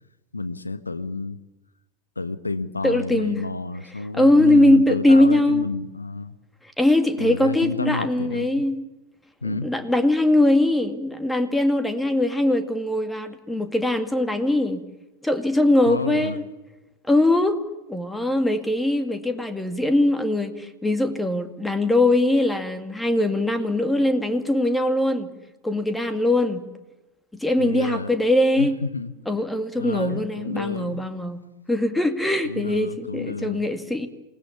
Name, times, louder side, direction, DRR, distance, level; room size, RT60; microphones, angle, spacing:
voice 1, 0.3-1.4 2.2-6.4 7.2-8.7 9.4-9.7 15.8-16.4 27.6-28.1 28.6-29.1 29.8-31.0 32.4-33.7, left 3 dB, 80° left, 1.2 m, -30 dB
voice 2, 2.8-3.4 4.1-5.7 6.8-8.8 9.4-14.8 15.2-16.4 17.1-17.6 17.9-25.3 25.6-26.6 27.4-28.7 29.3-31.4 31.7-34.1, left 1 dB, 5° left, 2.3 m, -21 dB
27.0 x 20.0 x 7.2 m
figure-of-eight pair, 90°, 0 cm